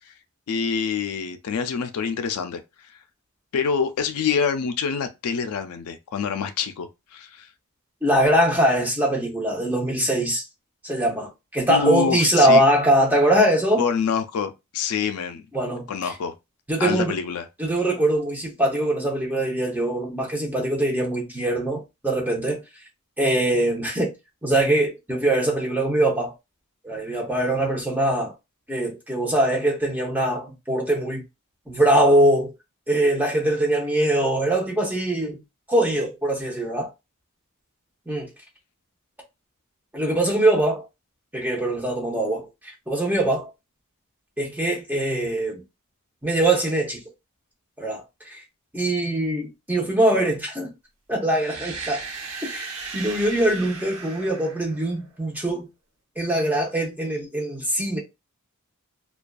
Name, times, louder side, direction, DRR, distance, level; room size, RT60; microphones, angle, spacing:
voice 1, 0.5-2.6 3.5-7.5 11.7-12.6 13.8-15.4 15.9-16.3 16.8-17.4, left 6 dB, 75° left, 0.4 m, -26 dB
voice 2, 8.0-10.4 10.8-13.8 15.5-16.1 16.7-17.2 17.6-22.6 23.2-24.1 24.4-26.3 26.8-28.3 28.7-31.2 31.7-32.5 32.9-35.4 35.7-36.9 38.1-38.3 39.9-40.8 41.3-43.5 44.4-45.6 46.2-47.0 47.8-48.4 48.7-50.7 51.1-52.0 52.4-55.7 56.2-58.0, right 1 dB, 10° right, 0.6 m, -22 dB
sound 1, 51.3-55.2, right 4 dB, 65° right, 0.7 m, -36 dB
2.4 x 2.2 x 2.2 m
head